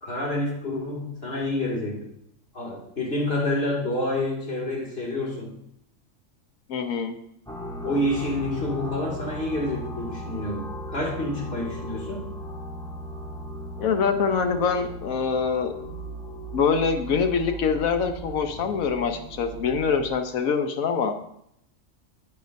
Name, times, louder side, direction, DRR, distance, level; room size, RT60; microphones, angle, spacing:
voice 1, 0.0-2.1 2.5-5.5 7.8-12.3, left 1 dB, 45° left, -3 dB, 2.4 m, -28 dB
voice 2, 6.7-7.2 13.8-15.7 16.5-21.1, left 6 dB, 90° left, 6 dB, 1.3 m, -24 dB
sound 1, 7.5-20.1, equal, 5° left, 0.7 m, -37 dB
10.5 x 8.3 x 2.6 m, 0.74 s
omnidirectional pair, 1.4 m